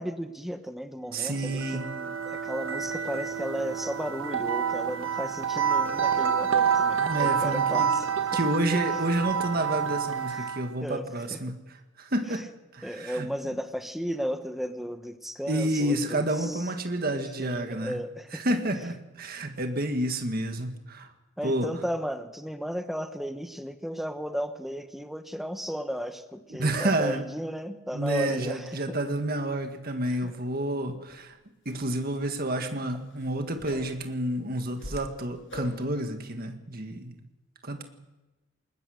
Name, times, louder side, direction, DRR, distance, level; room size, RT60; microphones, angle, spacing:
voice 1, 0.0-8.1 8.9-9.0 10.3-10.5 10.8-11.4 12.3-12.4 12.8-16.7 17.0-18.9 21.4-29.0 30.1-30.3, equal, ahead, 8 dB, 0.9 m, -35 dB
voice 2, 1.1-1.9 7.0-7.9 8.3-11.5 12.0-12.4 12.7-13.3 15.5-18.0 18.3-21.1 21.4-21.7 26.6-27.2 27.9-31.4 31.7-37.2 37.6-37.8, right 1 dB, 50° right, 6 dB, 1.8 m, -29 dB
sound 1, 1.3-10.7, right 7 dB, 80° right, 1.2 m, -28 dB
sound 2, 31.1-31.2 31.6-31.8 32.2-32.4 32.8-34.1 34.5-35.1 35.5-35.9 36.3-36.4, left 2 dB, 65° left, 7.5 m, -43 dB
20.5 x 20.0 x 6.5 m, 1.0 s
head